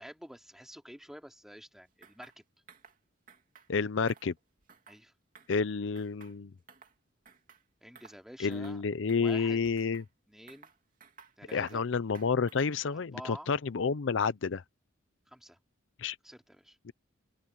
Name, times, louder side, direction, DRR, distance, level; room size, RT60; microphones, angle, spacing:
voice 1, 0.0-2.4 4.9-5.1 7.8-8.8 9.2-9.6 10.3-10.7 11.4-11.8 12.9-13.5 15.3-15.6 16.2-16.8, equal, ahead, 3.1 m, -48 dB
sound 1, 2.0-2.4 2.7-3.0 3.3-3.7 4.0-5.0 5.3-5.7 6.0-7.0 7.2-7.6 7.9-8.2 8.5-8.8 9.1-10.1 10.5-11.8 12.1-12.8, right 5 dB, 40° right, 2.9 m, -57 dB
voice 2, 3.7-4.3 5.5-6.5 8.4-10.0 11.5-14.6 16.0-16.2 16.9-17.0, left 5 dB, 65° left, 0.5 m, -30 dB
open air
head